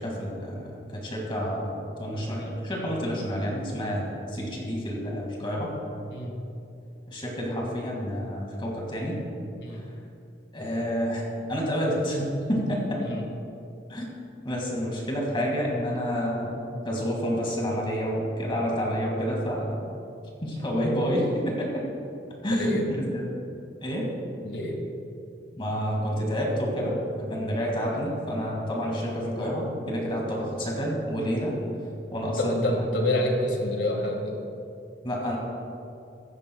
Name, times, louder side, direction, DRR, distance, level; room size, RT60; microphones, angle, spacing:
voice 1, 0.0-5.7 7.1-9.2 10.5-11.2 11.5-13.0 13.9-14.1 14.4-19.9 20.4-21.8 22.4-23.2 23.8-24.2 25.6-31.5 32.1-32.8 35.0-35.4, equal, 30° left, -2 dB, 2.1 m, -29 dB
voice 2, 22.5-22.9 24.4-24.8 32.3-34.4, left 1 dB, 70° left, 2 dB, 1.9 m, -28 dB
16.0 x 14.0 x 2.3 m, 2.6 s
head